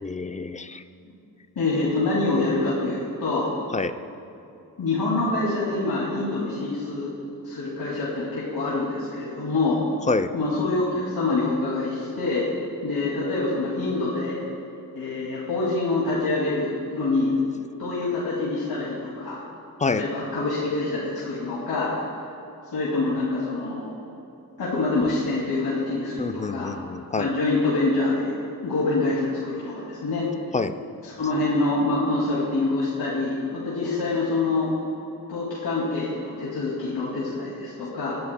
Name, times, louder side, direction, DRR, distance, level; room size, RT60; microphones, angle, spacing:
voice 1, 0.0-0.8 3.7-4.0 10.1-10.3 19.8-20.0 26.2-27.3 30.5-30.8, left 3 dB, 20° left, 10 dB, 0.4 m, -27 dB
voice 2, 1.6-3.5 4.8-7.1 7.4-9.8 10.3-12.4 12.8-14.4 14.9-17.3 17.8-19.4 20.0-21.9 22.7-24.0 24.6-26.7 27.2-28.3 28.6-30.3 31.0-34.8 35.3-38.1, left 2 dB, 75° left, -7 dB, 2.3 m, -25 dB
20.5 x 11.5 x 2.2 m, 2.9 s
wide cardioid pair, 115°, 37 cm